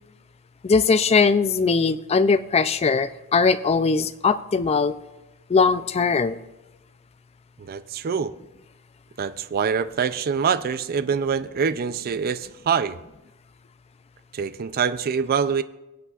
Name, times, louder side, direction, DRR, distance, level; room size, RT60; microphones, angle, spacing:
voice 1, 0.6-4.9 5.5-6.4, left 4 dB, 30° left, 13 dB, 0.4 m, -20 dB
voice 2, 7.6-8.3 9.2-13.0 14.3-15.6, right 6 dB, 45° right, 13 dB, 0.4 m, -25 dB
22.0 x 8.2 x 2.4 m, 0.98 s
head